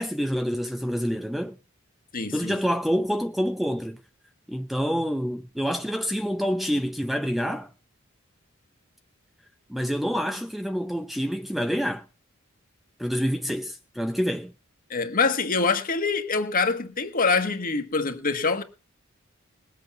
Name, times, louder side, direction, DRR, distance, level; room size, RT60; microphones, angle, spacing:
voice 1, 0.0-1.6 2.3-4.0 4.5-7.7 9.7-12.0 13.0-14.5, equal, ahead, 0.6 m, -27 dB
voice 2, 2.1-2.6 14.9-18.6, left 4 dB, 45° left, 1.5 m, -25 dB
19.5 x 8.1 x 5.9 m
head